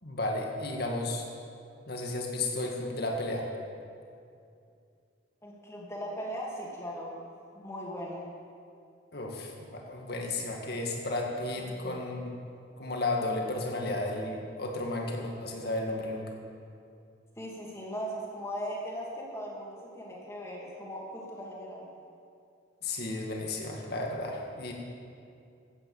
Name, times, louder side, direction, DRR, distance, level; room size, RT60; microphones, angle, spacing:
voice 1, 0.0-1.2 1.9-3.5 9.1-12.3 12.8-16.3 22.8-24.7, left 2 dB, 55° left, 1 dB, 2.0 m, -33 dB
voice 2, 5.4-8.3 11.6-12.0 17.4-21.9, equal, 15° left, -3 dB, 2.6 m, -39 dB
14.5 x 9.4 x 7.2 m, 2.5 s
head